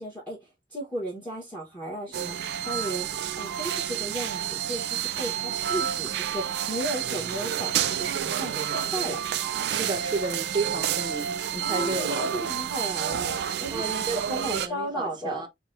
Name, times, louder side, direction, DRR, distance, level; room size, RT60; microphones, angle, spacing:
voice 1, 0.0-9.2 11.6-13.9 14.1-15.5, right 1 dB, 10° left, 1.3 m, -35 dB
sound 1, 2.1-14.7, right 9 dB, 65° right, 0.3 m, -29 dB
voice 2, 9.7-12.3 13.7-15.5, right 3 dB, 25° right, 0.7 m, -32 dB
5.7 x 2.3 x 2.7 m
head